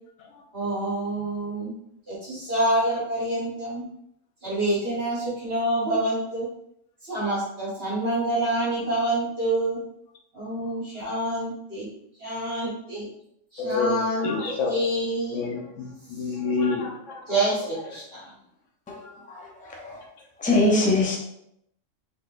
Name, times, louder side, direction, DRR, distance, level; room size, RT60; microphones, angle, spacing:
voice 1, 0.5-1.7 2.1-3.8 4.4-6.5 7.0-9.8 10.3-11.8 12.2-13.1 13.5-15.4 16.2-16.3 17.3-18.3, right 1 dB, 45° right, -8 dB, 1.6 m, -27 dB
voice 2, 13.6-14.7 15.3-17.2, left 4 dB, 65° left, 1 dB, 1.1 m, -28 dB
voice 3, 20.4-21.2, left 2 dB, 10° left, -1 dB, 0.4 m, -21 dB
4.2 x 3.9 x 2.5 m, 0.77 s
omnidirectional pair, 1.4 m